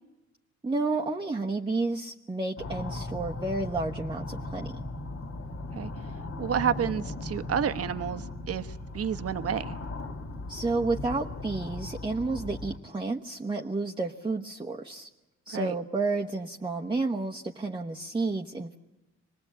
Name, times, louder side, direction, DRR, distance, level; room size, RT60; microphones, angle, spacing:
voice 1, 0.6-4.7 10.5-15.1 15.5-18.7, right 3 dB, 15° right, 0 dB, 1.1 m, -31 dB
sound 1, 2.6-12.8, left 2 dB, 45° left, 2.3 m, -38 dB
voice 2, 6.4-9.7 15.5-15.7, right 8 dB, 50° right, 11 dB, 1.1 m, -30 dB
24.5 x 20.0 x 8.2 m, 1.1 s
cardioid pair, 90°, 30 cm